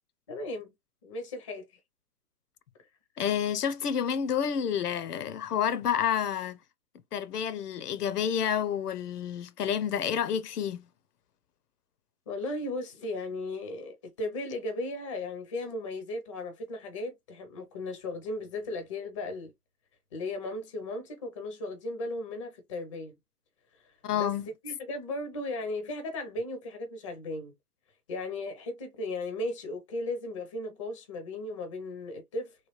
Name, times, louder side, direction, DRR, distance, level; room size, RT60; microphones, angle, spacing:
voice 1, 0.3-0.7 1.0-1.7 12.3-19.5 20.1-23.2 24.1-24.4 24.6-27.5 28.1-32.6, left 2 dB, 20° left, 0.4 m, -36 dB
voice 2, 3.2-6.6 7.1-10.8 24.0-24.5, left 8 dB, 80° left, 0.6 m, -29 dB
3.2 x 2.2 x 2.9 m
hypercardioid pair, 130°, 46 cm